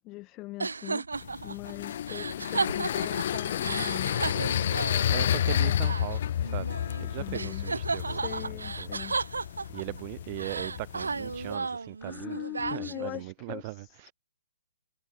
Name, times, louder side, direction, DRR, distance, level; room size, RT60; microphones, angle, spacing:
voice 1, 0.0-1.0 1.4-4.2 7.1-7.7 8.1-9.2 12.0-14.1, left 20 dB, 25° left, 5.1 m, -41 dB
sound 1, 0.6-7.1 7.3-10.0 10.4-13.2, right 4 dB, 90° right, 2.6 m, -34 dB
sound 2, 1.1-11.5, left 10 dB, 50° left, 2.1 m, -31 dB
voice 2, 4.0-4.5 5.1-8.9 9.7-14.1, right 24 dB, 30° right, 5.4 m, -40 dB
hypercardioid pair, 150°, 0 cm